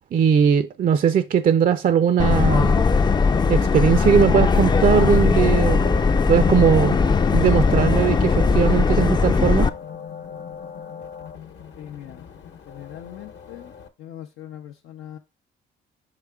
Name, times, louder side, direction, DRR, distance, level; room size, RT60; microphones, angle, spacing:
voice 1, 0.1-2.8 3.5-5.9 6.3-7.0 7.3-9.7, right 8 dB, 45° right, 0.4 m, -19 dB
Subway metro underground, 2.2-9.7, left 5 dB, 20° left, 0.4 m, -19 dB
sound 1, 5.4-13.9, left 6 dB, 65° left, 1.1 m, -38 dB
voice 2, 11.7-12.3 12.7-13.7 14.0-15.2, left 11 dB, 85° left, 0.7 m, -40 dB
5.7 x 4.8 x 3.5 m
cardioid pair, 90°, 20 cm